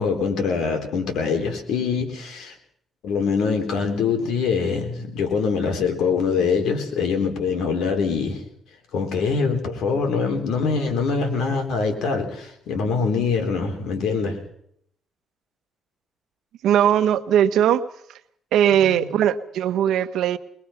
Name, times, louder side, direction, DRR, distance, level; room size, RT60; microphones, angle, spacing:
voice 1, 0.0-2.5 3.0-8.4 8.9-14.4 18.8-19.1, left 5 dB, 80° left, 5 dB, 3.7 m, -24 dB
voice 2, 16.6-17.8 18.5-20.4, right 10 dB, 80° right, 11 dB, 1.0 m, -19 dB
22.0 x 21.0 x 5.8 m, 0.71 s
cardioid pair, 90°, 0 cm